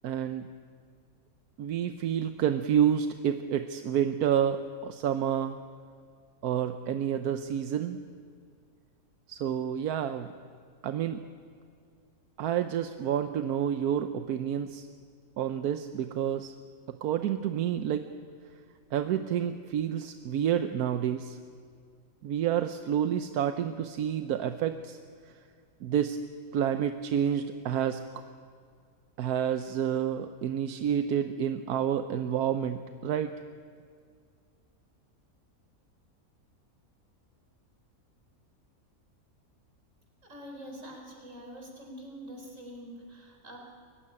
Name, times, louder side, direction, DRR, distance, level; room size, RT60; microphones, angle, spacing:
voice 1, 0.0-0.5 1.6-5.6 6.4-8.0 9.3-10.3 10.8-11.2 12.4-14.9 15.4-16.5 16.9-18.0 18.9-21.4 22.2-25.0 25.8-26.2 26.5-28.0 29.2-33.3, right 9 dB, 90° right, 8 dB, 1.3 m, -29 dB
voice 2, 40.2-43.6, equal, 60° right, 1 dB, 4.4 m, -45 dB
22.5 x 15.5 x 10.0 m, 2.2 s
omnidirectional pair, 1.5 m